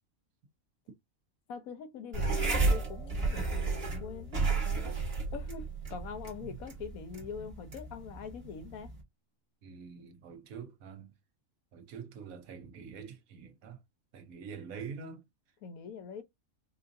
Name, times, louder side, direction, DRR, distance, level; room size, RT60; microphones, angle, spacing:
voice 1, 1.5-4.8 5.3-8.9 15.6-16.2, left 6 dB, 85° left, 1.2 m, -43 dB
sound 1, 2.1-9.0, right 3 dB, 45° right, 1.6 m, -33 dB
voice 2, 9.6-11.1 11.7-13.8 14.1-15.2, right 6 dB, 85° right, 1.3 m, -45 dB
4.8 x 2.6 x 2.5 m
omnidirectional pair, 1.5 m